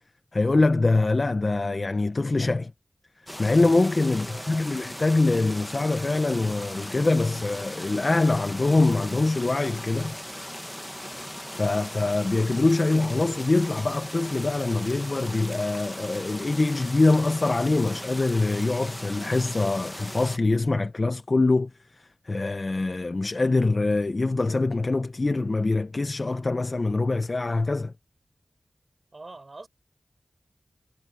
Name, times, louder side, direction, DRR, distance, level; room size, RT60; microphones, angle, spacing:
voice 1, 0.3-2.7 3.4-10.2 11.5-27.9, left 2 dB, 50° left, 0.9 m, -24 dB
sound 1, 3.3-20.4, equal, 5° left, 1.3 m, -38 dB
voice 2, 4.1-4.7 29.1-29.7, right 2 dB, 50° right, 5.0 m, -44 dB
cardioid pair, 50°, 0 cm